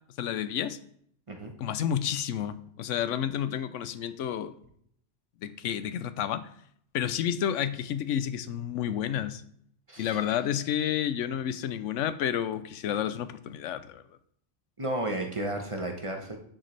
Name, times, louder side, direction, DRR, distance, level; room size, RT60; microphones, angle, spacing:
voice 1, 0.2-0.8 1.6-4.5 5.4-6.5 6.9-9.4 10.0-14.0, left 9 dB, 75° left, 1.0 m, -30 dB
voice 2, 9.9-10.2 14.8-16.4, right 1 dB, 25° right, 1.0 m, -33 dB
10.0 x 6.5 x 3.3 m
omnidirectional pair, 1.3 m